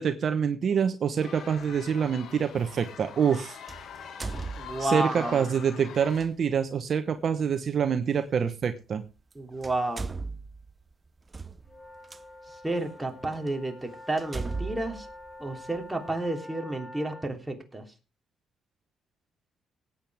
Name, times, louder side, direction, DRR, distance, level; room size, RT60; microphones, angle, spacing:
voice 1, 0.0-3.6 4.8-9.0, right 7 dB, 55° right, 9 dB, 1.0 m, -26 dB
sound 1, 1.2-6.3, left 7 dB, 70° left, 1.8 m, -44 dB
sound 2, 1.6-1.8 3.7-5.2 6.1-6.3 8.1-8.2 9.2-9.3 9.6-12.2 12.9-13.0 13.5-13.6 14.2-16.0, right 3 dB, 30° right, 0.7 m, -37 dB
voice 2, 4.6-5.4 9.3-10.1 12.6-15.1 15.4-17.8, right 1 dB, 10° right, 3 dB, 3.2 m, -31 dB
sound 3, 11.6-17.3, left 1 dB, 25° left, 3.4 m, -47 dB
18.0 x 8.9 x 3.5 m, 0.31 s
cardioid pair, 90°, 0 cm